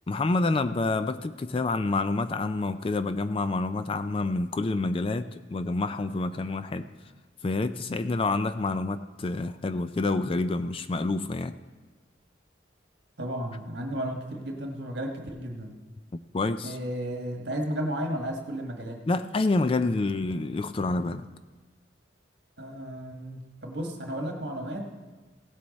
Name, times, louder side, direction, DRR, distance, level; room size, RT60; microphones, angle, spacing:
voice 1, 0.1-6.9 7.4-11.6 16.1-16.8 19.1-21.3, left 3 dB, 30° left, 12 dB, 0.3 m, -28 dB
voice 2, 13.2-15.8 16.6-19.0 22.6-24.8, right 1 dB, 60° right, 2 dB, 1.5 m, -33 dB
16.5 x 7.7 x 4.2 m, 1.3 s
head